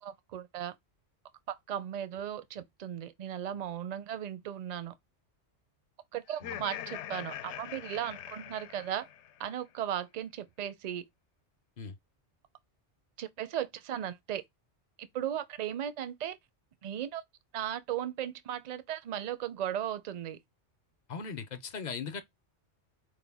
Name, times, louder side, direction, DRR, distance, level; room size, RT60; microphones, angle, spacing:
voice 1, 0.0-0.7 1.5-4.9 6.1-9.1 9.4-11.1 13.2-14.4 15.0-16.4 16.8-17.2 17.5-20.4, right 10 dB, 50° right, 0.5 m, -36 dB
Laughter, 6.3-9.5, left 11 dB, 75° left, 0.9 m, -43 dB
voice 2, 21.1-22.2, left 5 dB, 50° left, 0.6 m, -39 dB
5.0 x 2.2 x 3.4 m
omnidirectional pair, 1.2 m